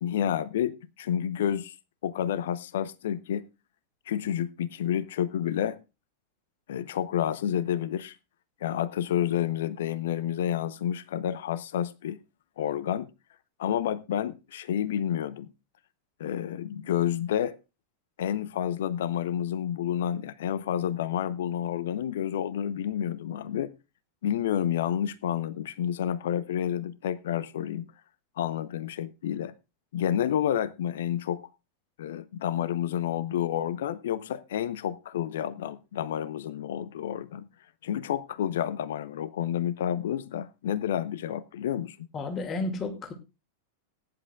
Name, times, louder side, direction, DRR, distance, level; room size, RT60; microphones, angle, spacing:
voice 1, 0.0-1.7 2.0-3.5 4.1-5.8 6.7-8.2 8.6-12.2 12.6-13.1 13.6-15.5 16.2-17.6 18.2-23.7 24.2-27.9 28.4-29.5 29.9-31.5 32.0-37.5 37.8-42.1, left 10 dB, 60° left, 0.7 m, -29 dB
voice 2, 42.1-43.1, left 3 dB, 25° left, 2.3 m, -32 dB
20.0 x 10.5 x 2.4 m
figure-of-eight pair, 90°, 0 cm